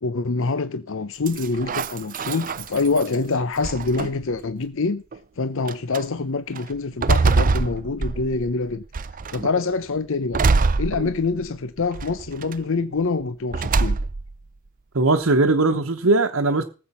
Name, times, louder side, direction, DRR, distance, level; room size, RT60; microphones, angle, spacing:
voice 1, 0.0-5.0 5.4-8.8 9.3-10.4 10.8-14.0, left 3 dB, 65° left, 0.7 m, -25 dB
sound 1, 1.3-3.1 3.6-4.4 5.1-5.2 5.7-6.0 6.6-8.5 8.9-9.5 10.3-11.5 11.9-12.5 13.5-14.3, right 4 dB, 40° right, 0.5 m, -23 dB
voice 2, 14.9-16.6, right 2 dB, 65° right, 1.1 m, -19 dB
18.5 x 7.7 x 5.6 m
head